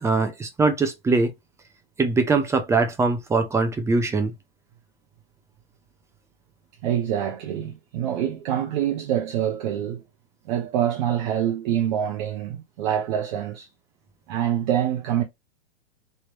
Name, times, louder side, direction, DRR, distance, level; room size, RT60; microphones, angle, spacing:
voice 1, 0.0-1.3 2.0-4.3, right 3 dB, 10° right, 0.7 m, -22 dB
voice 2, 6.8-10.0 10.5-13.7 14.3-15.2, right 10 dB, 45° right, 0.9 m, -25 dB
3.4 x 3.1 x 3.0 m
hypercardioid pair, 115°, 32 cm